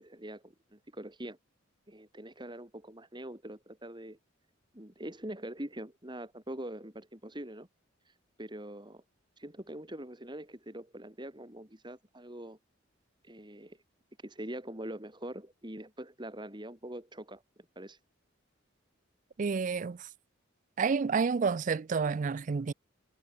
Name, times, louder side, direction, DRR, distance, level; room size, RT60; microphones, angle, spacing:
voice 1, 0.0-1.4 1.9-4.2 4.7-7.7 8.1-9.0 9.4-12.6 13.2-13.8 14.2-17.4 17.8-18.0, right 1 dB, 25° right, 3.4 m, -43 dB
voice 2, 19.4-20.1 20.8-22.7, right 5 dB, 40° right, 0.4 m, -29 dB
head